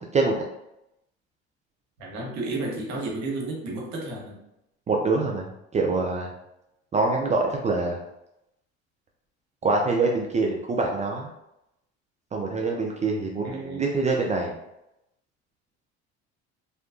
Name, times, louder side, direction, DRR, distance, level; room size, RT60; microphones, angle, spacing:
voice 1, 2.0-4.4 13.4-13.9, right 2 dB, 55° right, -1 dB, 1.0 m, -32 dB
voice 2, 4.9-5.5 5.7-6.3 6.9-8.0 9.6-11.3 12.3-14.5, right 3 dB, 20° right, 0 dB, 0.4 m, -25 dB
2.8 x 2.3 x 2.4 m, 0.86 s
hypercardioid pair, 70°, 33 cm